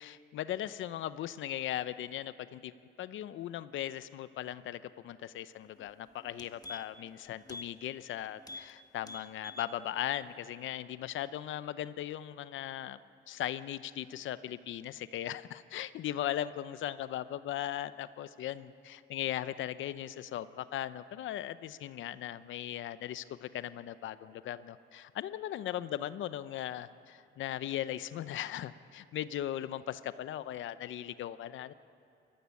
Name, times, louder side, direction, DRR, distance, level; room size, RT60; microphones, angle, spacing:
voice 1, 0.0-13.0 13.3-31.7, left 12 dB, 75° left, 14 dB, 0.7 m, -38 dB
sound 1, 5.8-5.9 6.2-7.1 7.4-7.7 8.0-8.1 8.4-8.7 9.0-9.7 10.1-10.2, left 2 dB, 20° left, 1.7 m, -46 dB
21.5 x 14.5 x 9.6 m, 2.5 s
cardioid pair, 90°, 20 cm